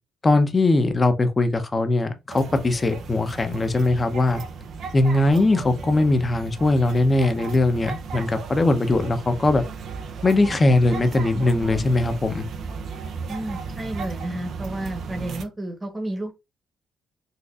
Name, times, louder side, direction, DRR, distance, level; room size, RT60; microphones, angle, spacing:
voice 1, 0.2-4.4 4.9-9.6 10.2-12.4, left 2 dB, 30° left, 0.6 m, -20 dB
sound 1, 2.3-15.4, right 5 dB, 65° right, 0.5 m, -35 dB
voice 2, 13.3-16.3, right 1 dB, 20° right, 1.0 m, -31 dB
4.1 x 2.5 x 2.4 m
cardioid pair, 90°, 0 cm